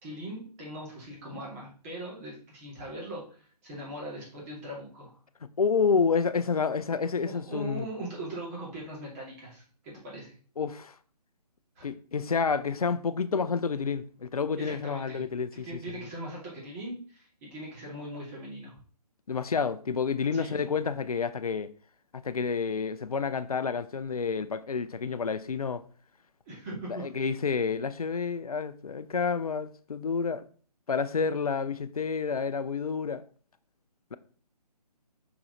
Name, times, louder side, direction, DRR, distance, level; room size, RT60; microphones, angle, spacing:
voice 1, 0.0-5.1 7.2-10.3 11.8-11.9 14.6-15.2 15.5-18.8 20.3-20.6 26.4-27.1, right 1 dB, 20° right, 2.7 m, -40 dB
voice 2, 5.6-7.9 10.6-10.9 11.8-15.8 19.3-21.7 22.1-25.8 26.9-30.4 30.9-33.2, left 5 dB, 60° left, 0.6 m, -29 dB
6.0 x 4.8 x 4.1 m
figure-of-eight pair, 145°, 21 cm